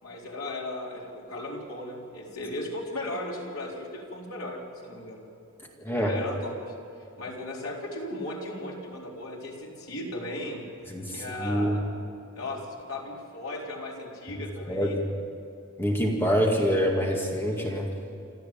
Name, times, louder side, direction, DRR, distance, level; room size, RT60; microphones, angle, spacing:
voice 1, 0.0-5.2 6.0-6.5 7.2-10.6 11.1-11.8 12.3-15.0, left 1 dB, 80° left, -2 dB, 4.4 m, -36 dB
voice 2, 5.8-6.1 10.9-11.8 14.7-15.0 15.8-17.9, equal, 10° left, -1 dB, 2.2 m, -26 dB
28.0 x 13.5 x 8.9 m, 2.6 s
head